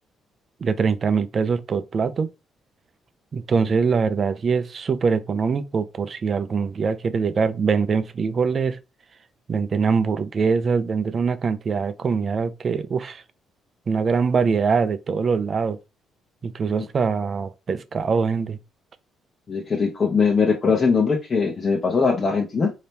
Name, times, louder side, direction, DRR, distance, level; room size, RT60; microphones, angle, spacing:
voice 1, 0.6-2.3 3.3-8.8 9.5-13.2 13.9-15.8 16.4-18.6, right 5 dB, 45° right, 0.5 m, -23 dB
voice 2, 19.5-22.7, left 5 dB, 40° left, 0.9 m, -21 dB
4.1 x 2.8 x 3.4 m
cardioid pair, 85°, 0 cm